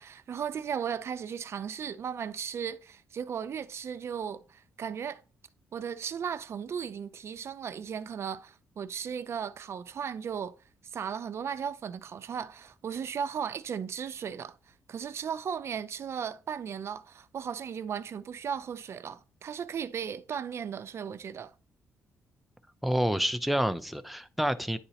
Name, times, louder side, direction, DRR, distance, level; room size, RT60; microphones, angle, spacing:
voice 1, 0.0-5.2 5.7-10.5 10.9-14.6 14.9-21.5, right 7 dB, 55° right, 0.5 m, -36 dB
voice 2, 22.8-24.8, equal, ahead, 0.5 m, -28 dB
9.9 x 3.8 x 2.9 m
cardioid pair, 90°, 6 cm